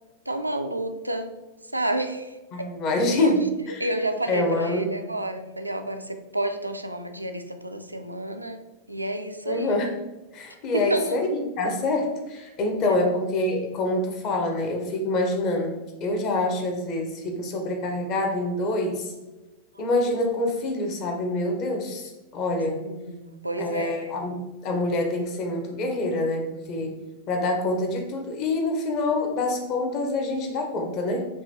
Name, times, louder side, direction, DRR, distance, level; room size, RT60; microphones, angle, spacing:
voice 1, 0.3-1.3 1.7-2.7 3.2-3.3 3.8-9.8 10.7-11.2 22.8-24.1, right 1 dB, 85° right, 7 dB, 0.3 m, -30 dB
voice 2, 2.5-3.9 4.3-4.9 9.4-9.9 10.3-19.1 19.8-22.8 23.6-27.0 27.3-31.3, left 2 dB, 40° left, 3 dB, 0.8 m, -26 dB
4.7 x 2.8 x 2.7 m, 1.1 s
figure-of-eight pair, 90°, 0 cm